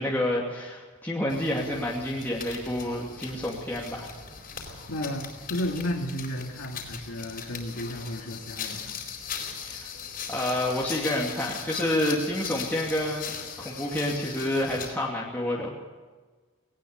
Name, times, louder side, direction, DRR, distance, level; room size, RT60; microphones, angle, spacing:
voice 1, 0.0-4.1 9.6-9.9 10.3-13.3 13.6-15.7, left 1 dB, 10° left, -4 dB, 2.7 m, -29 dB
sound 1, 1.3-15.0, left 6 dB, 45° left, 4.4 m, -39 dB
voice 2, 4.9-9.0, left 1 dB, 75° left, 1 dB, 2.3 m, -33 dB
19.5 x 19.0 x 6.8 m, 1.4 s
head